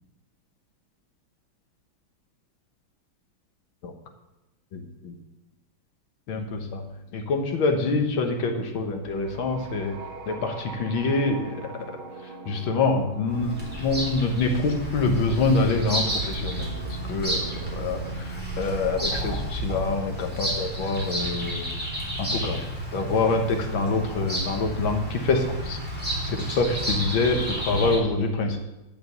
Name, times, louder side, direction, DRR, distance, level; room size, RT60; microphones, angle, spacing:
voice 1, 4.7-5.2 6.3-10.0 10.3-12.0 12.5-21.7 22.2-22.6 22.9-28.7, left 3 dB, 75° left, 4 dB, 2.0 m, -26 dB
sound 1, 9.0-19.1, right 5 dB, 70° right, 0.5 m, -40 dB
Bird vocalization bird call bird song, 13.3-28.0, equal, 5° right, 2.9 m, -31 dB
11.0 x 5.0 x 8.0 m, 1.0 s
omnidirectional pair, 2.2 m